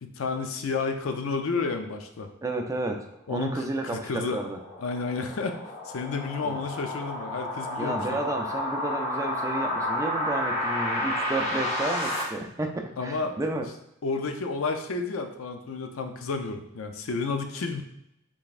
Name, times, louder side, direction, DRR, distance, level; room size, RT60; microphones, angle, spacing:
voice 1, 0.0-2.3 3.3-4.4 4.8-5.6 5.8-8.2 13.0-13.3 14.0-17.8, left 4 dB, 80° left, 6 dB, 0.5 m, -31 dB
voice 2, 2.4-4.6 6.4-6.6 7.8-13.7, right 2 dB, 15° right, 3 dB, 0.4 m, -32 dB
sound 1, 3.6-12.2, left 1 dB, 35° left, 1.1 m, -31 dB
5.1 x 3.5 x 2.5 m, 0.80 s
head